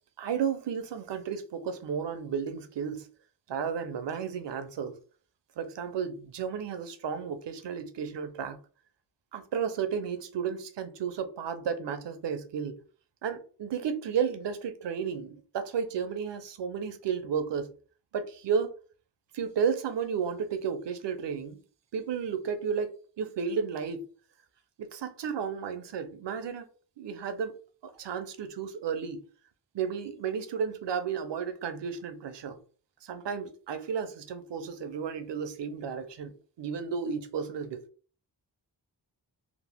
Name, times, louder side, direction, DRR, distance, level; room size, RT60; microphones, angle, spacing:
voice 1, 0.2-3.1 3.5-5.0 5.6-8.6 9.3-12.8 13.2-17.7 18.1-18.7 19.3-21.6 21.9-24.1 24.8-26.7 27.0-27.5 27.8-29.2 29.7-32.6 33.0-37.8, right 6 dB, 75° right, 0.6 m, -33 dB
2.9 x 2.0 x 3.4 m
wide cardioid pair, 85°, 42 cm